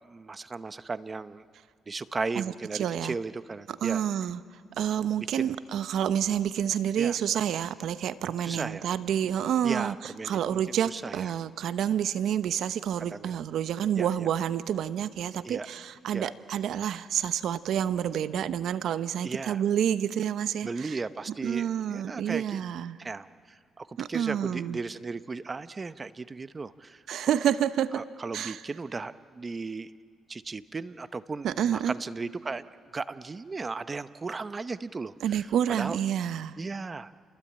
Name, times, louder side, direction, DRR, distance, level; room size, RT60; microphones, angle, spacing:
voice 1, 0.0-1.4 1.9-4.0 5.2-5.5 7.0-7.2 8.4-8.9 9.6-11.3 13.0-13.4 14.0-14.3 15.4-15.7 16.1-16.3 19.2-19.6 20.6-22.6 23.0-27.3 27.9-29.9 30.3-32.7 32.9-36.0 36.6-37.1, right 4 dB, 30° right, 13 dB, 0.8 m, -36 dB
voice 2, 2.4-3.1 3.8-4.4 4.8-10.0 10.2-21.0 21.4-23.0 24.0-24.8 27.1-28.0 28.3-28.6 31.4-32.0 35.2-36.6, right 9 dB, 75° right, 13 dB, 0.8 m, -28 dB
29.0 x 21.5 x 8.8 m, 2.1 s
cardioid pair, 90°, 0 cm